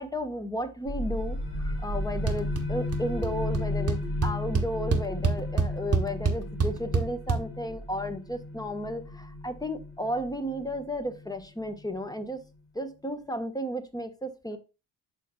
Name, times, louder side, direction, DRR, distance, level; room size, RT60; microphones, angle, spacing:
voice 1, 0.0-12.4 12.7-14.6, equal, 10° left, 9 dB, 1.2 m, -33 dB
sound 1, 0.9-12.2, left 1 dB, 85° left, 2.2 m, -34 dB
sound 2, 2.3-2.6 2.9-3.3 3.5-3.6 3.9-7.4, right 4 dB, 30° right, 1.2 m, -26 dB
11.0 x 4.2 x 2.2 m, 0.29 s
hypercardioid pair, 45°, 47 cm